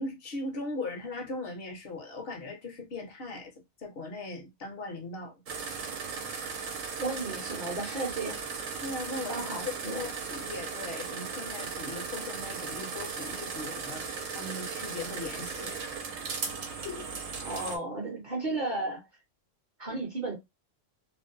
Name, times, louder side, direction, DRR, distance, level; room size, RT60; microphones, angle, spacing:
voice 1, 0.0-3.5 3.8-5.3 8.8-9.5 9.8-15.8 16.7-17.1, left 2 dB, 55° left, 0.8 m, -39 dB
sound 1, 5.5-17.8, right 5 dB, 80° right, 1.0 m, -37 dB
voice 2, 7.0-8.4 9.3-10.0 17.4-19.1 19.8-20.4, right 2 dB, 45° right, 0.8 m, -34 dB
2.5 x 2.1 x 2.6 m
omnidirectional pair, 1.4 m